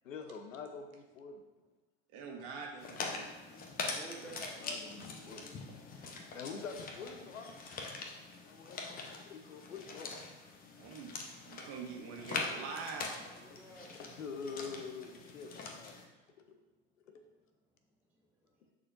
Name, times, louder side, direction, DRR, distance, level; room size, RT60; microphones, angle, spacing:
voice 1, 0.0-1.4 3.0-3.2 4.2-5.4 6.3-7.5 8.3-10.1 14.0-15.9 17.0-17.1, left 5 dB, 90° left, 6 dB, 0.9 m, -46 dB
voice 2, 2.1-3.4 10.8-11.1 11.4-13.4, right 4 dB, 50° right, 0 dB, 1.5 m, -44 dB
sound 1, 2.8-16.1, left 3 dB, 25° left, 0.9 m, -43 dB
voice 3, 3.1-4.6 13.2-13.9, right 3 dB, 5° right, -2 dB, 0.5 m, -53 dB
9.6 x 4.2 x 2.6 m, 1.2 s
hypercardioid pair, 110°, 38 cm